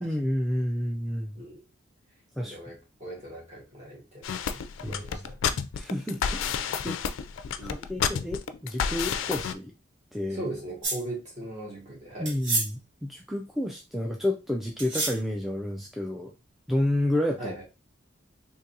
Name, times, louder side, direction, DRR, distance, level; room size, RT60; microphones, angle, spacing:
voice 1, 0.0-1.4 2.4-2.6 4.8-5.0 5.7-6.5 6.8-7.0 7.6-9.7 10.1-10.4 12.2-16.3 16.7-17.6, left 1 dB, ahead, 0.3 m, -30 dB
voice 2, 2.4-5.4 7.6-8.1 10.3-12.3 17.4-17.6, right 1 dB, 35° right, 1.8 m, -39 dB
sound 1, 4.2-9.5, left 7 dB, 75° left, 0.4 m, -30 dB
sound 2, 10.8-11.0 12.3-12.7 14.8-15.2, right 3 dB, 65° right, 1.3 m, -28 dB
3.8 x 2.6 x 2.7 m
head